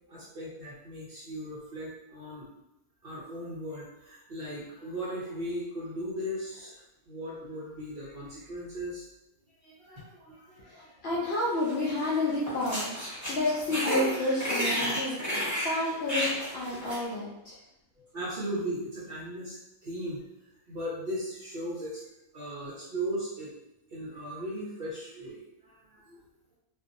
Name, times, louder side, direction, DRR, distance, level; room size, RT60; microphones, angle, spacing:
voice 1, 0.1-2.5 3.0-9.1 9.6-10.9 18.0-20.2 20.7-22.0 22.3-23.5 23.9-26.2, equal, 55° right, -7 dB, 0.7 m, -37 dB
voice 2, 10.6-17.6, left 2 dB, 65° left, -6 dB, 0.6 m, -30 dB
sound 1, 11.7-12.1 12.4-17.0, equal, 15° left, 0.7 m, -32 dB
2.5 x 2.2 x 2.5 m, 0.90 s
omnidirectional pair, 1.5 m